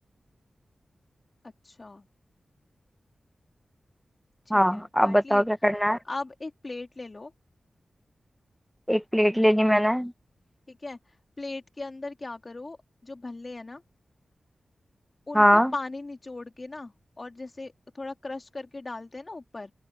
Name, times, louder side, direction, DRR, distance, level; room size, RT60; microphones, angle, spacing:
voice 1, 1.4-2.1 4.4-5.5 6.0-7.3 10.7-12.8 13.0-13.8 15.3-19.7, left 2 dB, 45° left, 2.9 m, -38 dB
voice 2, 4.5-6.0 8.9-10.1 15.3-15.7, equal, ahead, 0.9 m, -21 dB
open air
cardioid pair, 40°, 0 cm